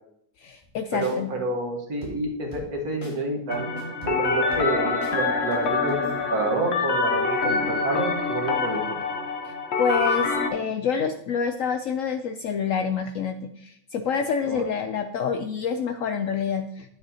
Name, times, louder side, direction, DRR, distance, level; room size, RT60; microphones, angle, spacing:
voice 1, 0.4-1.3 9.4-9.5 9.8-17.0, left 6 dB, 80° left, 7 dB, 0.7 m, -27 dB
sound 1, 0.6-0.8 1.0-1.2 2.0-2.8 3.0-3.2 3.5-5.2 5.5-6.1, left 1 dB, 30° left, 1.8 m, -42 dB
voice 2, 0.9-3.7 4.0-9.0 14.5-14.6, right 2 dB, 55° right, 1 dB, 1.8 m, -28 dB
sound 2, 3.5-10.5, left 4 dB, 45° left, 1.0 m, -26 dB
9.6 x 8.0 x 2.8 m, 0.73 s
omnidirectional pair, 1.9 m